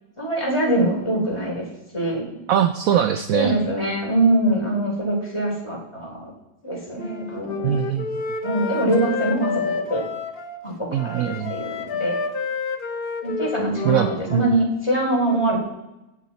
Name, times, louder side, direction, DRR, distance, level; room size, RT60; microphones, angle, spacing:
voice 1, 0.2-1.6 1.9-2.2 3.3-6.3 6.6-7.7 8.4-10.0 10.6-12.2 13.2-15.6, right 1 dB, 15° left, -2 dB, 3.7 m, -23 dB
voice 2, 2.5-3.5 7.6-8.1 10.9-11.5 13.8-14.5, right 10 dB, 65° right, 9 dB, 0.9 m, -22 dB
Wind instrument woodwind instrument, 7.0-10.6 11.0-14.6, left 5 dB, 40° left, 1.0 m, -30 dB
17.0 x 9.9 x 4.2 m, 0.94 s
omnidirectional pair, 1.8 m